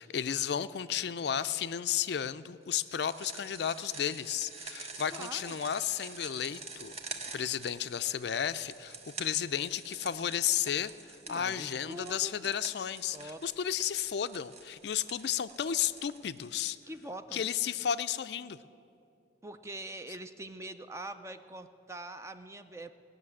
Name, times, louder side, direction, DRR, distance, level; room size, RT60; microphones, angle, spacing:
voice 1, 0.0-6.9 7.3-10.9 11.3-16.8 17.3-18.6, left 9 dB, 60° left, 14 dB, 0.4 m, -33 dB
sound 1, 2.7-17.0, right 4 dB, 35° right, 1.1 m, -47 dB
voice 2, 5.1-5.6 11.3-12.5 13.1-13.5 16.9-17.4 19.4-22.9, right 1 dB, 15° right, 10 dB, 0.4 m, -44 dB
18.5 x 6.7 x 9.7 m, 2.6 s
head